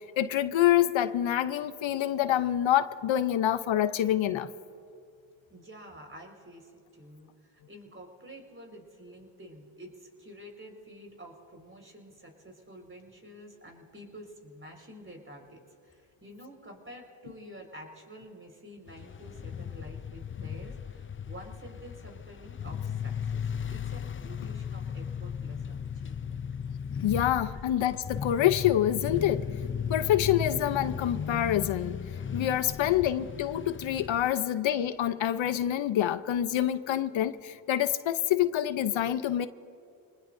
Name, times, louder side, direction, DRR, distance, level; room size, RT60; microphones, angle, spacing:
voice 1, 0.2-4.5 27.0-29.5 29.9-32.0 32.3-39.5, left 11 dB, 75° left, 0.7 m, -26 dB
voice 2, 5.5-25.8 26.0-26.5, equal, 25° right, 4.5 m, -49 dB
sound 1, 18.9-34.3, left 7 dB, 25° left, 0.5 m, -36 dB
27.5 x 19.5 x 2.6 m
cardioid pair, 55°, 47 cm